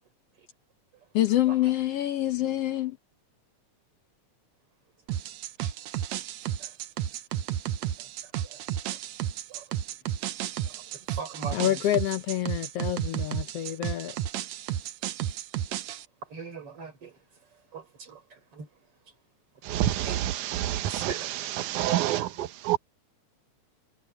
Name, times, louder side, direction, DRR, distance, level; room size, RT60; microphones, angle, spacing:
voice 1, 1.1-3.0 11.5-14.1, left 13 dB, 65° left, 1.6 m, -27 dB
sound 1, 5.1-16.0, right 11 dB, 75° right, 2.0 m, -33 dB
voice 2, 11.2-11.8 16.3-17.1 17.7-18.2 18.5-18.7 20.1-20.2 20.9-21.3 22.4-22.5, right 5 dB, 50° right, 4.8 m, -38 dB
voice 3, 19.6-22.8, right 13 dB, 90° right, 2.4 m, -28 dB
omnidirectional pair, 3.4 m